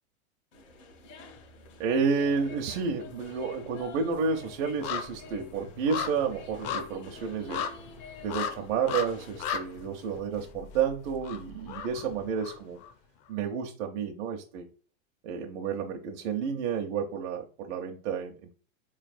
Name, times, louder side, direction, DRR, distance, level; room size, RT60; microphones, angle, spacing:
sound 1, 0.5-10.2, left 3 dB, 65° left, 1.2 m, -50 dB
voice 1, 1.8-7.7 8.2-12.8 13.3-14.7 15.2-18.5, right 6 dB, 60° right, 1 dB, 0.8 m, -31 dB
sound 2, 1.9-2.6 2.9-12.9 13.3-13.4, left 7 dB, 45° left, 0.6 m, -38 dB
4.2 x 3.2 x 2.5 m, 0.38 s
hypercardioid pair, 115°, 40 cm